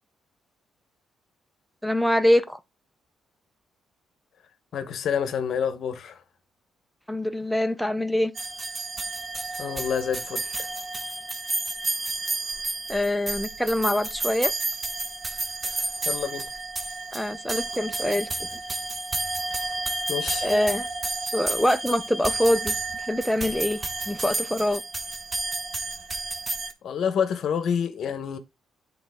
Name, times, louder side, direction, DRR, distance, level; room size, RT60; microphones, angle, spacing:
voice 1, 1.8-2.6 7.1-8.3 12.9-14.5 17.1-18.5 20.4-20.9 21.3-24.8, left 1 dB, ahead, 0.6 m, -24 dB
voice 2, 4.7-6.2 9.6-10.6 15.6-16.5 20.1-20.5 26.8-28.4, left 7 dB, 65° left, 0.9 m, -28 dB
sound 1, 8.3-26.7, right 2 dB, 25° right, 1.1 m, -31 dB
9.2 x 4.1 x 3.5 m
cardioid pair, 90°, 0 cm